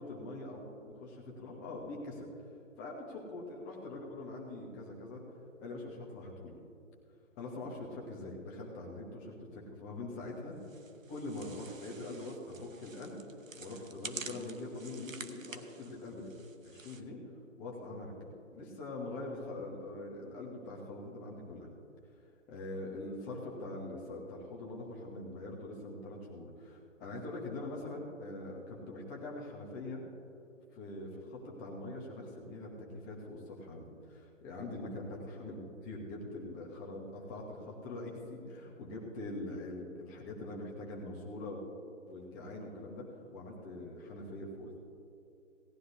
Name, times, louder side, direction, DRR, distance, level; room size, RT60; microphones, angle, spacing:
voice 1, 0.0-2.3 2.8-5.2 5.6-6.6 7.4-10.6 11.1-13.2 13.6-16.3 16.6-17.2 17.6-21.7 22.5-30.0 30.7-34.2 34.4-41.6 42.1-43.1 43.3-44.8, left 2 dB, 10° left, -1 dB, 0.9 m, -43 dB
sound 1, 10.6-17.0, right 5 dB, 85° right, 1.0 m, -49 dB
17.5 x 11.0 x 2.7 m, 2.6 s
figure-of-eight pair, 150°, 39 cm